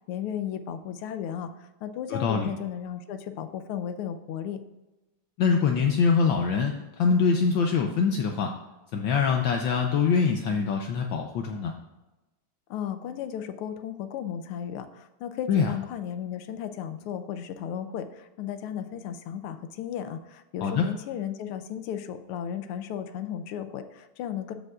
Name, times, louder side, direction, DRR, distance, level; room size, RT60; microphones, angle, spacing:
voice 1, 0.1-4.6 12.7-24.5, left 9 dB, 85° left, 10 dB, 1.6 m, -35 dB
voice 2, 2.1-2.5 5.4-8.5 8.9-11.7 15.5-15.7 20.6-20.9, left 5 dB, 70° left, 3 dB, 1.3 m, -24 dB
15.0 x 5.2 x 2.4 m, 1.1 s
omnidirectional pair, 2.4 m